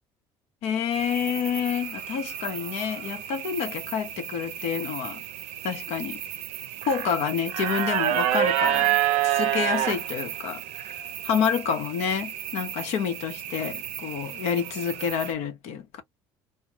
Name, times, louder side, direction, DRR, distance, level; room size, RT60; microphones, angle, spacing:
voice 1, 0.6-5.2 5.6-6.2 6.9-9.0 9.2-16.0, left 7 dB, 70° left, 0.9 m, -28 dB
sound 1, 0.9-15.3, right 12 dB, 70° right, 0.5 m, -30 dB
2.4 x 2.2 x 3.0 m
supercardioid pair, 80°, 12 cm